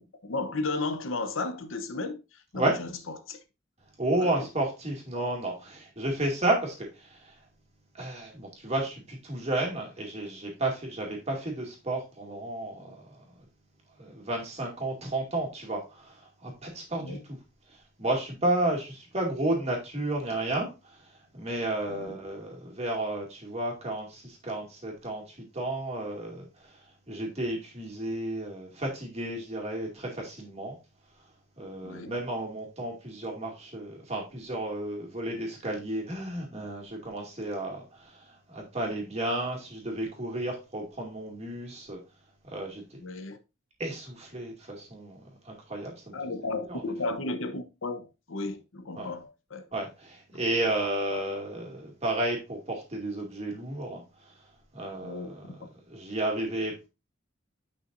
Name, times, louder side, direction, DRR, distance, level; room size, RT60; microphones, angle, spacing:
voice 1, 0.2-3.4 4.2-4.4 17.0-17.2 21.9-22.2 31.8-32.1 43.0-43.4 46.1-49.7 55.0-55.6, left 3 dB, 80° left, 0.9 m, -34 dB
voice 2, 4.0-7.4 7.9-13.3 14.0-17.4 17.7-26.8 27.1-30.8 31.6-42.0 42.4-42.8 43.8-46.1 46.6-46.8 49.0-49.1 49.7-54.3 54.7-55.5 55.9-56.7, right 1 dB, 35° right, 2.3 m, -32 dB
9.4 x 5.7 x 2.6 m
head